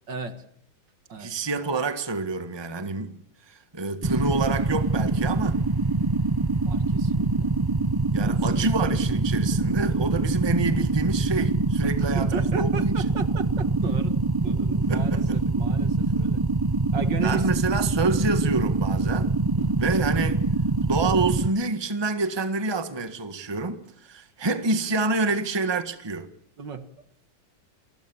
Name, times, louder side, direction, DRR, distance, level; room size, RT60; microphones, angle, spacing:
voice 1, 0.1-0.4 1.1-1.3 6.7-7.5 8.2-8.3 11.8-16.4 16.9-17.5 19.6-19.8 26.6-26.9, right 6 dB, 60° right, 2.3 m, -35 dB
voice 2, 1.2-3.1 3.5-5.6 8.1-13.1 14.9-15.4 17.2-19.3 19.8-20.4 20.8-26.3, right 3 dB, 15° right, 1.5 m, -27 dB
sound 1, 4.0-21.5, right 3 dB, 35° right, 0.3 m, -24 dB
29.5 x 20.5 x 7.3 m
omnidirectional pair, 2.2 m